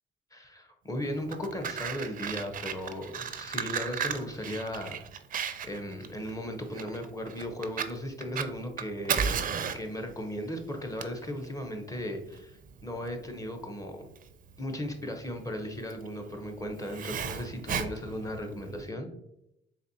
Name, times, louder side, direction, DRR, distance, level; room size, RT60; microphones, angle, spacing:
voice 1, 0.3-5.0 5.4-9.4 9.7-14.1 14.6-19.1, equal, 15° left, 4 dB, 0.8 m, -36 dB
Fire, 1.1-18.8, right 7 dB, 45° right, 0.4 m, -36 dB
4.1 x 3.3 x 2.7 m, 0.84 s
cardioid pair, 90°, 20 cm